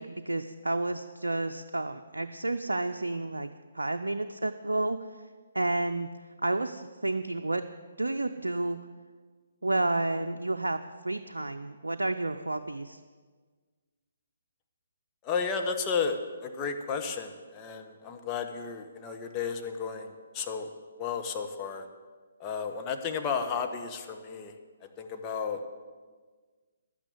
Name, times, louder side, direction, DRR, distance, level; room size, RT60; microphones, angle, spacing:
voice 1, 0.0-3.5 3.7-5.0 5.5-6.1 6.4-7.7 8.0-8.8 9.6-13.0, right 2 dB, 85° right, 7 dB, 0.5 m, -30 dB
voice 2, 15.2-16.2 16.4-20.7 21.0-21.8 22.4-24.5 25.0-25.6, left 6 dB, 25° left, 4 dB, 1.2 m, -33 dB
12.0 x 9.2 x 7.8 m, 1.5 s
figure-of-eight pair, 140°, 0 cm